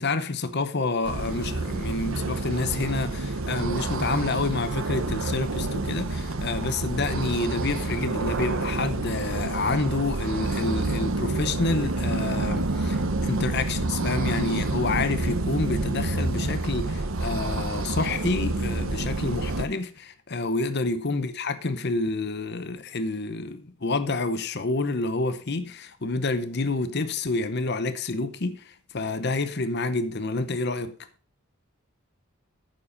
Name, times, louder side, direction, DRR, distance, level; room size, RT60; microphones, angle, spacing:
voice 1, 0.0-30.9, left 3 dB, 50° left, 0.8 m, -28 dB
sound 1, 1.0-19.6, right 2 dB, 70° right, 0.9 m, -28 dB
9.2 x 7.1 x 5.2 m
head